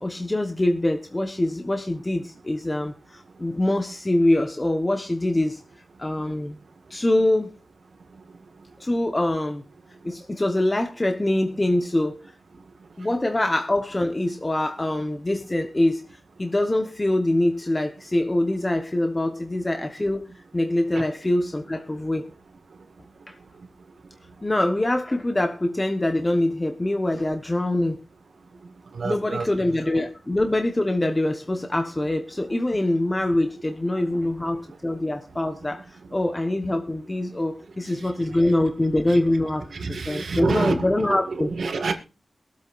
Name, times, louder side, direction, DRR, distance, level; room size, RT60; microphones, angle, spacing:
voice 1, 0.0-5.6 6.0-6.6 6.9-7.5 8.8-9.6 10.0-12.2 13.0-16.0 16.4-20.3 20.5-22.2 23.3-23.4 24.4-28.0 29.0-41.5, left 1 dB, 25° left, 1.1 m, -24 dB
voice 2, 29.0-29.5 39.1-39.2 39.8-41.9, right 4 dB, 80° right, 1.8 m, -27 dB
22.0 x 8.3 x 2.5 m
wide cardioid pair, 75°, 0 cm